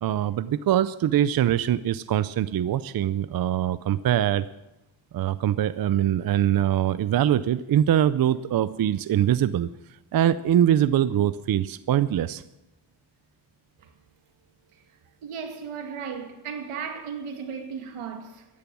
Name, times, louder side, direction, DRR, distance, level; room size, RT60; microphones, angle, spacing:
voice 1, 0.0-4.5 5.1-9.7 10.1-12.4, right 11 dB, 45° right, 0.5 m, -23 dB
voice 2, 15.2-18.5, right 6 dB, 85° right, 2.1 m, -35 dB
15.0 x 10.5 x 6.1 m
cardioid pair, 110°, 49 cm